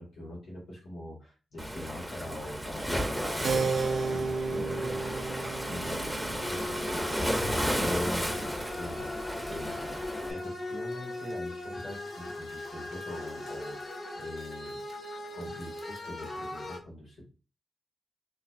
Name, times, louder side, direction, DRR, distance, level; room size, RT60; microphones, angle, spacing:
voice 1, 0.0-5.3 5.6-8.5 8.8-9.1 9.5-10.0 10.3-14.8 15.3-17.3, left 1 dB, 85° left, -3 dB, 1.5 m, -42 dB
Waves surf, 1.6-10.3, equal, ahead, 0.6 m, -33 dB
Keyboard (musical), 3.4-9.6, right 4 dB, 75° right, 0.4 m, -34 dB
sound 1, 6.4-16.8, left 2 dB, 65° left, 0.9 m, -39 dB
3.2 x 2.2 x 4.3 m, 0.34 s
cardioid pair, 85°, 0 cm